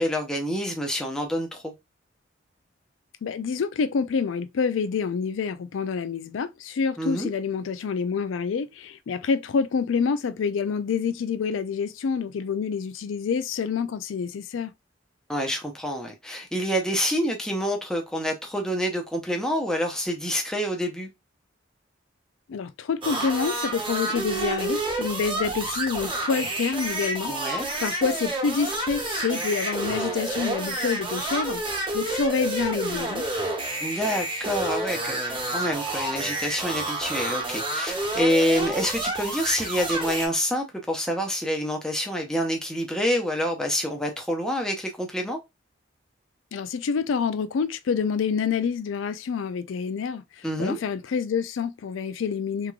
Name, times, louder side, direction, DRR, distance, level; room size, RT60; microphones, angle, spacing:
voice 1, 0.0-1.7 7.0-7.3 15.3-21.1 27.3-27.7 33.8-45.4 50.4-50.8, equal, 5° left, 0.7 m, -27 dB
voice 2, 3.2-14.7 22.5-33.2 46.5-52.7, left 5 dB, 90° left, 0.4 m, -27 dB
sound 1, 23.0-40.3, right 2 dB, 25° right, 1.2 m, -29 dB
3.5 x 3.1 x 2.3 m
head